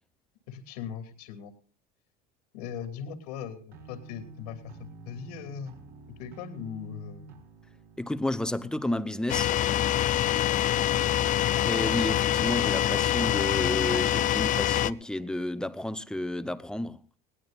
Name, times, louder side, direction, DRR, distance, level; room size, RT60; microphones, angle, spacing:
voice 1, 0.5-1.5 2.5-5.7 6.1-7.3, left 7 dB, 90° left, 2.8 m, -39 dB
sound 1, 3.7-8.9, right 4 dB, 55° right, 4.8 m, -49 dB
voice 2, 8.0-9.5 11.5-17.0, left 1 dB, 5° left, 0.9 m, -31 dB
sound 2, 9.3-14.9, left 12 dB, 40° left, 0.6 m, -25 dB
20.0 x 18.0 x 2.5 m
supercardioid pair, 115°, 20 cm